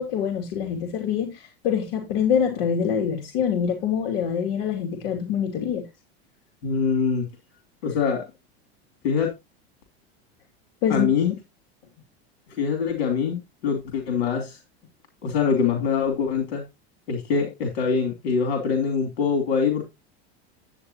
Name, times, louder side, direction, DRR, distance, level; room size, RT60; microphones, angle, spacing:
voice 1, 0.0-5.9 10.8-11.1, left 8 dB, 70° left, 2.8 m, -25 dB
voice 2, 6.6-7.3 7.8-8.2 9.0-9.3 10.9-11.3 12.6-14.6 15.2-16.6 17.1-19.8, left 6 dB, 85° left, 3.0 m, -24 dB
10.5 x 8.5 x 2.9 m
supercardioid pair, 125°, 31 cm